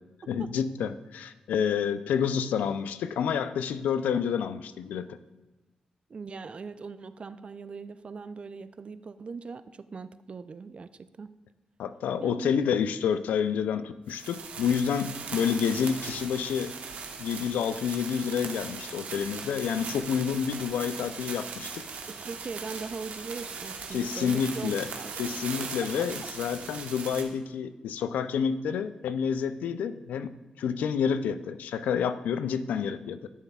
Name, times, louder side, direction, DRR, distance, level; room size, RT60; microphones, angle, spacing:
voice 1, 0.3-5.2 11.8-16.7 17.2-21.8 23.9-24.9 25.2-33.3, left 7 dB, 90° left, 12 dB, 0.4 m, -29 dB
voice 2, 6.1-11.3 12.2-12.5 22.1-25.3 25.8-26.3, right 4 dB, 45° right, 14 dB, 0.4 m, -40 dB
sound 1, 14.1-27.2, right 5 dB, 80° right, 1.0 m, -39 dB
13.0 x 7.1 x 2.3 m, 1.1 s
cardioid pair, 60°, 3 cm